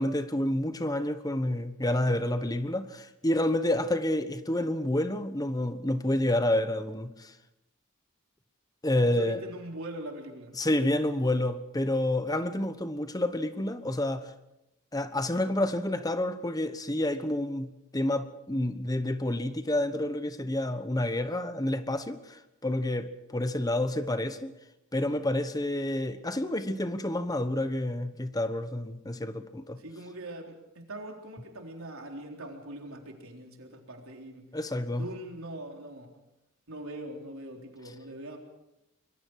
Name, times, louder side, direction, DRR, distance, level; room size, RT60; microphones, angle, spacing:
voice 1, 0.0-7.3 8.8-9.4 10.6-14.3 14.9-24.5 24.9-29.8 34.5-35.1, left 1 dB, 20° left, 1.1 m, -29 dB
voice 2, 9.1-10.5 29.8-34.5 34.9-36.1 36.7-38.4, right 1 dB, 85° right, 3.9 m, -42 dB
25.0 x 22.5 x 4.8 m
head